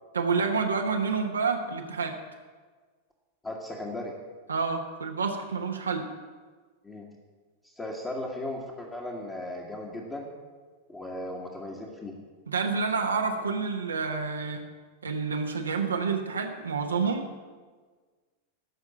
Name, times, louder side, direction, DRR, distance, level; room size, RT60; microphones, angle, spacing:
voice 1, 0.1-2.1 4.5-6.1 12.5-14.6 15.0-17.3, right 5 dB, 75° right, 3 dB, 1.1 m, -28 dB
voice 2, 3.4-4.1 6.8-7.0 7.8-10.3 10.9-12.2, left 1 dB, 15° left, -4 dB, 1.7 m, -36 dB
13.5 x 6.0 x 8.6 m, 1.4 s
figure-of-eight pair, 90°, 0 cm